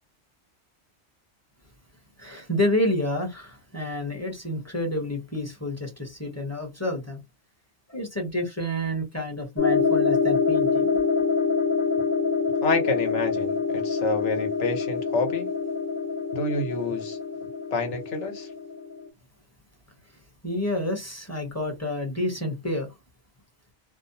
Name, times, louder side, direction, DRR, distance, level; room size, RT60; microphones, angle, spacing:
voice 1, 2.2-7.2 7.9-11.0 20.4-22.9, left 1 dB, 15° left, 0.7 m, -29 dB
sound 1, 9.6-19.1, left 5 dB, 55° left, 0.6 m, -25 dB
voice 2, 12.6-15.5 16.3-17.2 17.7-18.5, left 3 dB, 85° left, 1.2 m, -28 dB
2.6 x 2.0 x 2.6 m
omnidirectional pair, 1.2 m